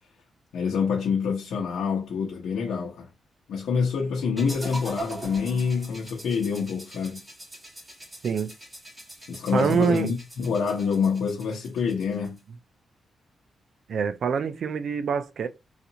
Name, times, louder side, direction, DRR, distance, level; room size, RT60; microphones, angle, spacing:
voice 1, 0.5-3.1 3.5-7.2 9.3-12.4, left 6 dB, 90° left, 0.9 m, -26 dB
sound 1, 4.4-12.4, right 1 dB, 15° right, 2.1 m, -42 dB
voice 2, 9.5-10.1 13.9-15.5, right 6 dB, 60° right, 0.4 m, -25 dB
4.0 x 2.5 x 2.8 m
cardioid pair, 115°, 0 cm